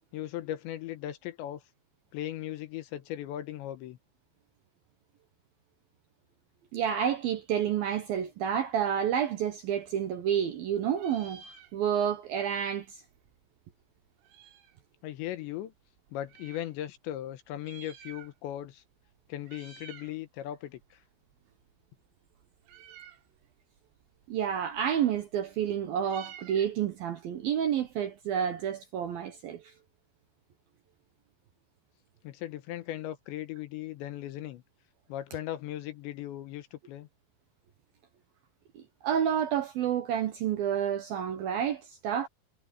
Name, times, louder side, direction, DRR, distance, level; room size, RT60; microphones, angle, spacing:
voice 1, 0.1-1.6 2.1-4.0 15.0-15.7 16.1-18.8 19.3-21.0 32.2-34.6 35.1-37.1, left 13 dB, 75° left, 3.2 m, -38 dB
voice 2, 6.7-11.4 11.7-13.0 24.3-29.7 38.8-42.3, right 9 dB, 70° right, 2.3 m, -29 dB
Meow, 9.6-10.6 10.9-12.2 12.5-12.6 12.7-14.9 15.5-16.7 17.5-18.7 18.9-19.1 19.4-20.2 20.5-28.4, right 8 dB, 90° right, 5.3 m, -53 dB
omnidirectional pair, 5.6 m